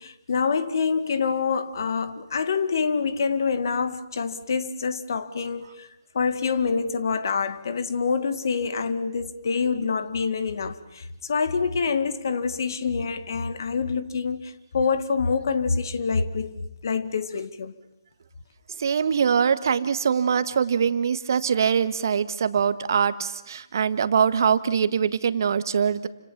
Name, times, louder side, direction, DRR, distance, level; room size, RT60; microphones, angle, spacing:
voice 1, 0.0-5.9 6.1-16.5 16.8-17.7, left 5 dB, 55° left, 2.2 m, -26 dB
voice 2, 18.8-26.1, right 7 dB, 55° right, 1.6 m, -23 dB
29.5 x 26.5 x 7.5 m
figure-of-eight pair, 145°, 2 cm